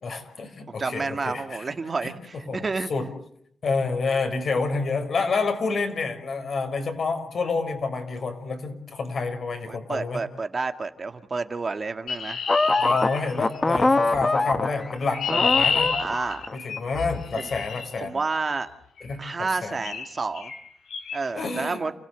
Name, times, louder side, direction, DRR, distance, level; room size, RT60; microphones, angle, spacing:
voice 1, 0.0-1.6 2.0-2.1 2.5-3.1 3.6-10.2 12.7-16.0 16.5-18.1 19.0-19.8 21.3-21.8, left 4 dB, 55° left, 6 dB, 5.9 m, -28 dB
voice 2, 0.7-2.9 9.7-12.5 15.3-15.4 16.0-16.4 17.4-17.5 18.0-18.7 19.2-20.5 21.1-21.9, right 4 dB, 35° right, 8 dB, 1.9 m, -30 dB
Chirp tweet, 12.1-13.7 14.7-17.9 19.0-19.2 19.8-20.1 20.3-20.6 20.9-21.2, left 6 dB, 85° left, 5.4 m, -29 dB
sound 1, 12.5-15.0 15.3-17.0, left 2 dB, 25° left, 1.4 m, -23 dB
29.5 x 17.0 x 8.2 m, 0.69 s
cardioid pair, 90°, 0 cm